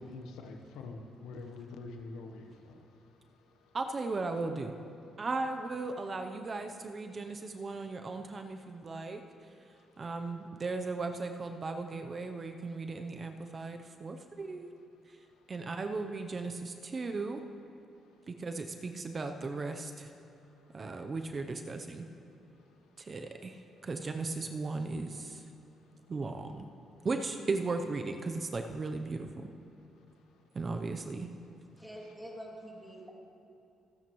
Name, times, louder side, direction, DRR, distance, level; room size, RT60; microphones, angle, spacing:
voice 1, 0.0-3.8 5.1-5.3 7.2-7.3 8.8-10.2 13.8-13.9 14.3-14.4 15.2-15.5 17.9-18.4 20.4-21.1 22.5-23.2 23.5-23.6 25.7-26.1 29.8-30.4 31.8-31.9, left 3 dB, 90° left, 4 dB, 1.0 m, -50 dB
voice 2, 3.7-4.7 5.2-9.2 10.0-14.7 15.5-17.4 18.3-20.1 20.7-22.1 23.0-25.4 26.1-26.7 27.0-29.5 30.5-31.3, right 3 dB, 35° right, 6 dB, 0.7 m, -36 dB
voice 3, 31.8-33.1, equal, 5° right, -2 dB, 2.6 m, -46 dB
25.5 x 9.1 x 3.1 m, 2.5 s
cardioid pair, 90°, 0 cm